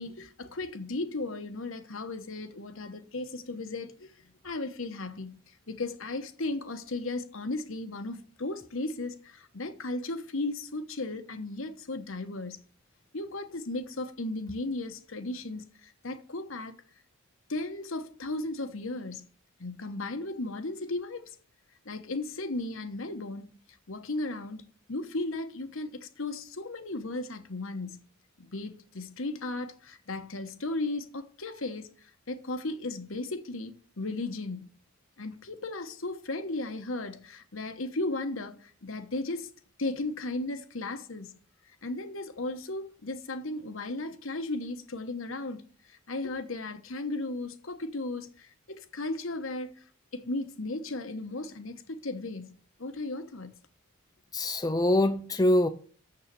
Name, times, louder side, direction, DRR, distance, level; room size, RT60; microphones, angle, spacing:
voice 1, 0.0-4.1 4.4-12.6 13.1-16.7 17.5-19.3 19.6-21.3 21.8-23.6 23.9-28.1 28.4-31.9 32.3-34.8 35.2-39.5 39.8-41.4 41.8-49.8 50.1-53.6, left 2 dB, 60° left, 1.2 m, -35 dB
voice 2, 54.3-55.7, left 1 dB, 15° left, 0.6 m, -24 dB
7.4 x 6.9 x 6.8 m
head